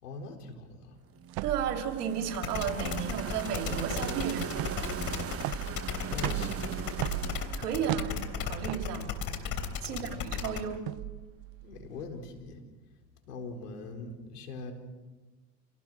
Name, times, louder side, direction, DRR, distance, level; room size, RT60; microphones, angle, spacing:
voice 1, 0.0-1.0 6.1-7.2 9.8-10.2 11.6-12.7 13.3-14.7, left 3 dB, 90° left, 4 dB, 4.4 m, -42 dB
sound 1, 1.1-9.2, right 9 dB, 30° right, 1.1 m, -40 dB
sound 2, 1.3-12.5, right 18 dB, 55° right, 0.7 m, -39 dB
voice 2, 1.4-4.5 4.9-5.0 7.5-9.1 9.8-10.9, right 8 dB, 85° right, 3 dB, 3.3 m, -33 dB
sound 3, 2.3-10.6, left 7 dB, 50° left, 3.5 m, -35 dB
29.0 x 18.5 x 6.4 m, 1.2 s
hypercardioid pair, 85°, 45 cm